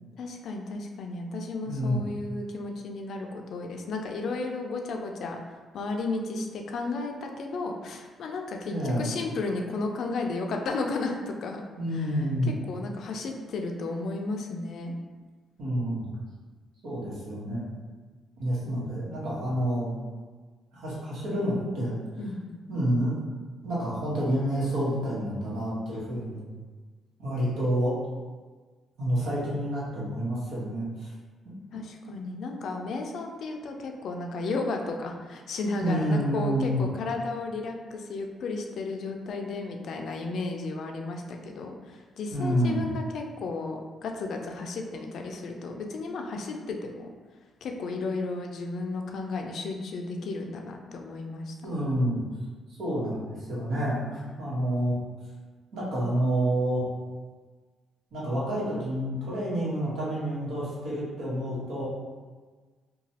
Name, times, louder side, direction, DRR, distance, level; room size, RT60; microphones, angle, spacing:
voice 1, 0.2-5.4 5.7-11.6 11.9-12.1 12.7-14.9 22.2-22.6 31.7-47.1 47.6-51.7, left 3 dB, 65° left, 2 dB, 0.4 m, -33 dB
voice 2, 1.7-2.0 8.6-9.1 11.8-12.5 15.6-16.1 16.8-17.7 18.4-19.9 20.7-21.9 22.7-23.2 23.6-26.5 27.2-27.9 29.0-31.1 35.8-36.9 42.3-42.9 51.6-52.2 52.7-55.0 55.7-56.8 58.1-61.9, equal, 75° right, -7 dB, 1.2 m, -28 dB
3.0 x 2.3 x 2.8 m, 1.4 s
cardioid pair, 90°, 0 cm